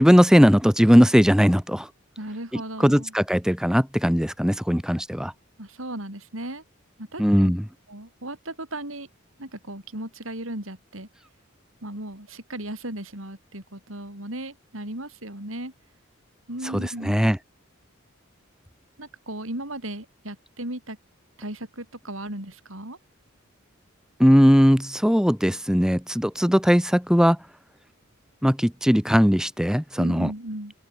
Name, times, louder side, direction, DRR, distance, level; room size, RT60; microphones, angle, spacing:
voice 1, 0.0-1.9 2.5-5.3 7.2-7.6 16.7-17.4 24.2-27.4 28.4-30.3, equal, 5° right, 3.1 m, -19 dB
voice 2, 2.2-3.1 5.6-6.6 7.0-7.5 7.9-9.1 9.4-11.1 11.8-15.7 16.5-17.3 19.0-21.0 21.4-23.0 30.0-30.7, right 1 dB, 80° right, 7.8 m, -36 dB
open air
head